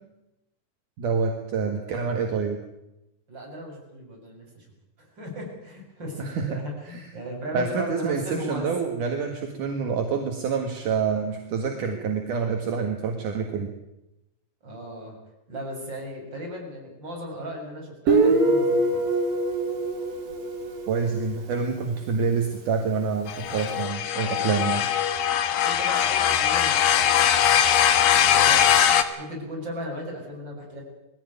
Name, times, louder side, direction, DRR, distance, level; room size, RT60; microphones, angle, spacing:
voice 1, 1.0-2.6 6.2-6.6 6.9-7.1 7.5-13.7 20.9-24.9, right 5 dB, 65° right, 3 dB, 3.3 m, -27 dB
voice 2, 3.3-4.7 5.0-8.7 14.6-15.1 15.5-19.0 25.5-28.9 29.2-30.8, equal, 30° right, -1 dB, 7.7 m, -36 dB
Guitar, 18.1-21.6, right 2 dB, 85° right, 4.4 m, -23 dB
sound 1, 23.3-29.0, left 9 dB, 85° left, 3.1 m, -21 dB
21.5 x 16.0 x 9.6 m, 0.90 s
omnidirectional pair, 4.0 m